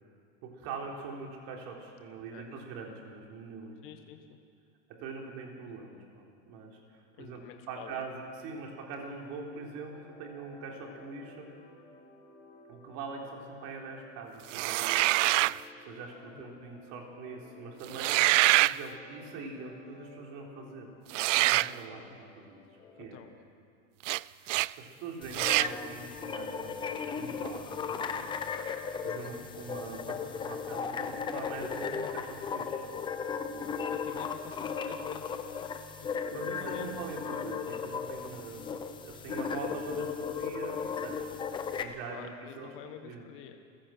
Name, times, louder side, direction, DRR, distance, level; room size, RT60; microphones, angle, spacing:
voice 1, 0.4-3.8 4.9-7.4 7.7-11.5 12.7-15.1 15.8-20.9 21.3-22.6 23.0-23.2 24.4-28.3 29.0-32.8 36.0-38.6 39.0-42.7 43.0-43.2, right 4 dB, 40° right, 0 dB, 3.9 m, -43 dB
voice 2, 3.8-4.4 7.2-8.0 16.3-16.5 22.9-23.5 29.4-29.6 33.6-35.7 36.0-37.1 42.1-43.6, left 9 dB, 35° left, 6 dB, 1.3 m, -48 dB
sound 1, 9.5-22.9, left 3 dB, 65° left, 4.7 m, -56 dB
sound 2, 14.5-15.6 17.9-18.8 21.1-21.7 24.0-24.2 24.5-24.7 25.3-25.7, right 19 dB, 75° right, 0.5 m, -25 dB
sound 3, 25.2-41.8, left 6 dB, 15° left, 0.7 m, -36 dB
28.5 x 16.0 x 6.0 m, 2.3 s
supercardioid pair, 160°, 38 cm